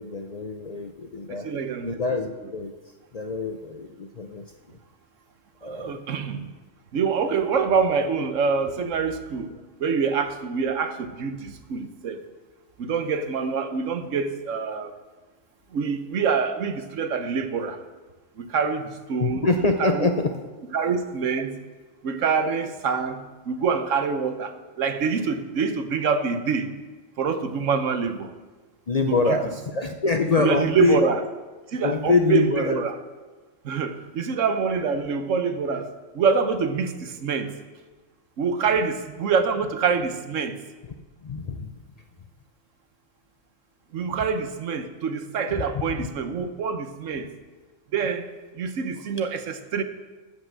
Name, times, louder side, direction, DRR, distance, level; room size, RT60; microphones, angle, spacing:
voice 1, 0.0-1.5 1.8-2.7 3.1-4.4 5.6-6.0 19.2-20.3 28.9-31.0 31.8-32.9 41.2-41.7 46.0-46.1, left 4 dB, 45° left, 6 dB, 0.5 m, -24 dB
voice 2, 1.3-2.0 5.6-6.5 6.9-9.5 9.8-12.2 12.8-14.9 15.7-17.8 18.4-19.5 19.8-20.1 20.7-21.5 22.0-23.2 23.5-26.7 27.2-28.3 29.1-29.4 30.4-31.2 31.7-33.0 33.6-35.9 36.1-37.5 38.4-40.6 43.9-47.3 47.9-48.3 48.6-49.8, right 5 dB, 80° right, 9 dB, 1.3 m, -25 dB
13.5 x 5.7 x 7.4 m, 1.3 s
omnidirectional pair, 1.3 m